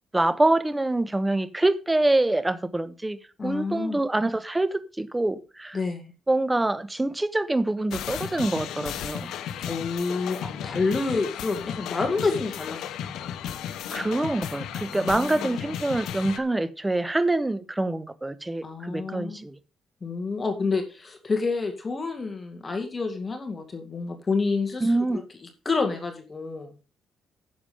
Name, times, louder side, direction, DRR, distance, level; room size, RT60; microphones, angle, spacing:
voice 1, 0.1-5.8 6.3-9.3 13.9-19.6 24.8-25.2, right 2 dB, 15° right, 1.0 m, -25 dB
voice 2, 3.4-4.0 5.7-6.1 9.6-13.5 14.9-15.5 18.6-19.4 20.0-25.0 25.7-26.7, left 4 dB, 30° left, 2.1 m, -29 dB
sound 1, 7.9-16.4, left 9 dB, 80° left, 0.8 m, -34 dB
10.5 x 7.2 x 5.0 m
cardioid pair, 90°, 0 cm